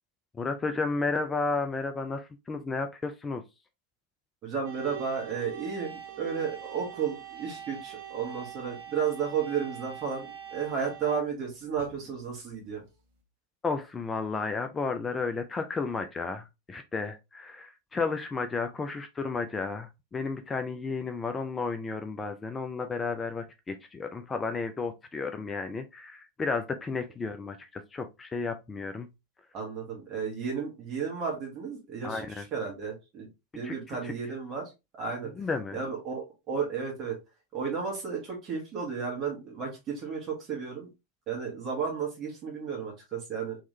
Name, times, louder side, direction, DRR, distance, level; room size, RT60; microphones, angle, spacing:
voice 1, 0.3-3.4 13.6-29.1 32.0-32.4 33.6-33.7 34.0-34.1 35.4-35.8, left 4 dB, 15° left, 0.5 m, -33 dB
voice 2, 4.4-12.8 29.5-33.3 33.5-35.3 35.7-37.2 37.5-40.9 41.3-43.6, right 6 dB, 30° right, 1.5 m, -33 dB
sound 1, 4.6-12.5, right 9 dB, 60° right, 1.0 m, -43 dB
3.6 x 3.1 x 2.6 m
figure-of-eight pair, 90°, 0 cm